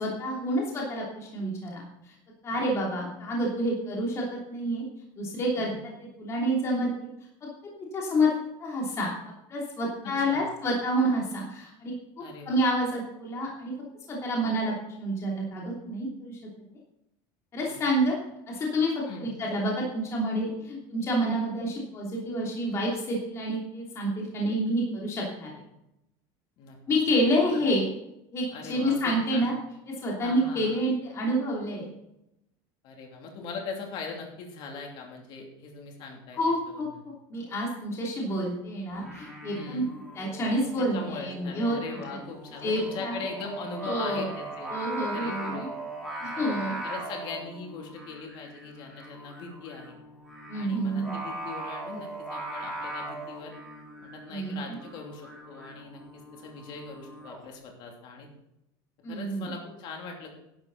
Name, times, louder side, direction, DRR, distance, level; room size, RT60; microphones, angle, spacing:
voice 1, 0.0-1.8 2.4-4.8 5.2-5.7 6.2-7.1 7.4-7.5 7.8-8.3 8.6-9.1 9.5-13.7 14.1-16.4 17.5-18.2 18.5-25.5 26.9-27.8 28.3-29.5 29.9-31.9 36.3-36.9 37.3-39.8 40.1-41.8 42.6-43.2 43.8-44.3 44.7-45.7 46.2-46.8 50.5-51.2 54.3-54.8 59.0-59.5, equal, 25° left, -2 dB, 3.0 m, -28 dB
voice 2, 10.0-10.4 12.2-12.6 17.6-17.9 19.1-19.3 26.6-26.8 27.5-27.6 28.5-29.4 30.2-30.8 32.8-36.4 36.7-36.8 39.5-39.9 40.8-44.7 45.1-45.7 46.2-50.0 50.5-53.5 54.0-58.3 59.1-60.3, left 4 dB, 45° left, 1 dB, 2.9 m, -40 dB
Singing, 38.9-57.4, right 2 dB, 5° left, 3.6 m, -40 dB
11.5 x 11.0 x 4.1 m, 0.84 s
cardioid pair, 165°, 11 cm